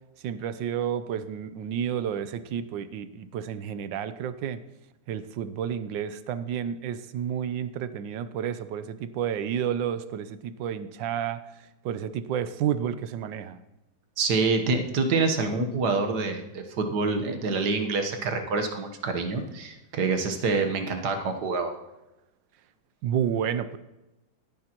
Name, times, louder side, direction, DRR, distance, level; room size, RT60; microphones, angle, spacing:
voice 1, 0.2-4.6 5.1-11.4 11.8-13.6 23.0-23.8, right 9 dB, 80° right, 13 dB, 1.3 m, -30 dB
voice 2, 14.2-21.7, right 4 dB, 60° right, 5 dB, 1.6 m, -26 dB
17.5 x 10.0 x 3.0 m, 0.98 s
omnidirectional pair, 2.0 m